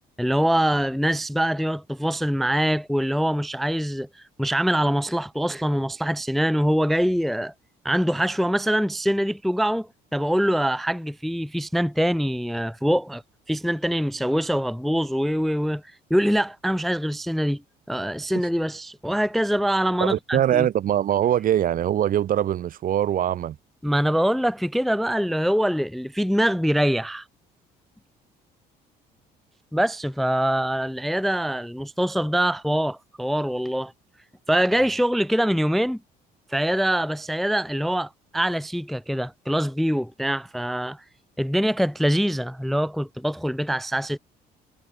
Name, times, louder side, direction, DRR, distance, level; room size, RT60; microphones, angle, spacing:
voice 1, 0.2-7.5 7.8-13.2 13.5-15.8 16.1-17.6 17.9-20.7 23.8-27.2 29.7-33.9 34.5-36.0 36.5-41.0 41.4-44.2, equal, ahead, 0.4 m, -24 dB
voice 2, 20.0-23.6, right 11 dB, 55° right, 1.5 m, -22 dB
cardioid pair, 110°, 17 cm